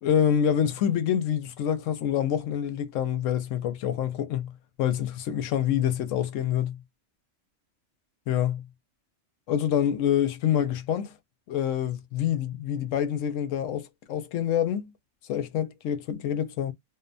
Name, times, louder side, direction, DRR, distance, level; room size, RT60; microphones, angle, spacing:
voice 1, 0.0-4.5 4.8-6.8 8.3-8.6 9.5-11.1 11.5-14.9 15.3-16.7, left 9 dB, 85° left, 0.9 m, -26 dB
2.6 x 2.1 x 2.4 m
omnidirectional pair, 1.3 m